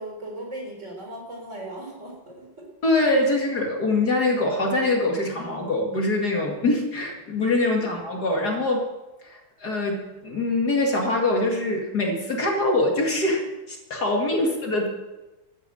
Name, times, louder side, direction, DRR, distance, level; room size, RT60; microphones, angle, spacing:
voice 1, 0.0-2.7 7.8-7.9 14.4-14.5, right 1 dB, 35° right, 0 dB, 4.4 m, -38 dB
voice 2, 2.8-8.9 9.2-14.9, left 2 dB, 50° left, 0 dB, 2.7 m, -24 dB
14.0 x 9.7 x 7.7 m, 1.1 s
omnidirectional pair, 2.2 m